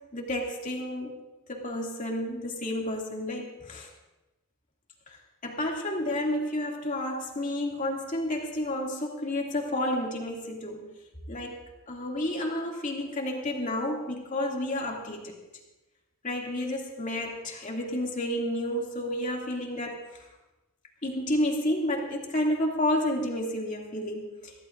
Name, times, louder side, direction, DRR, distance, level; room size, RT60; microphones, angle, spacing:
voice 1, 0.1-1.1 1.5-3.9 5.1-5.2 5.4-10.8 11.3-11.6 11.9-15.4 16.2-20.3 21.0-24.5, left 1 dB, 35° left, -1 dB, 2.5 m, -30 dB
23.5 x 16.0 x 2.6 m, 1.0 s
head